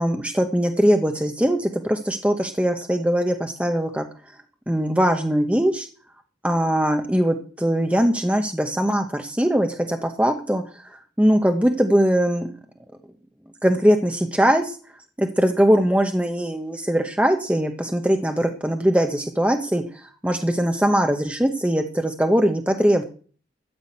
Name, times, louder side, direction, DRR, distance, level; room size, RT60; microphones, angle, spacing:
voice 1, 0.0-4.0 4.7-5.9 6.4-12.5 13.6-14.8 15.2-23.0, equal, 5° right, 5 dB, 1.0 m, -21 dB
13.5 x 6.2 x 8.6 m, 0.41 s
head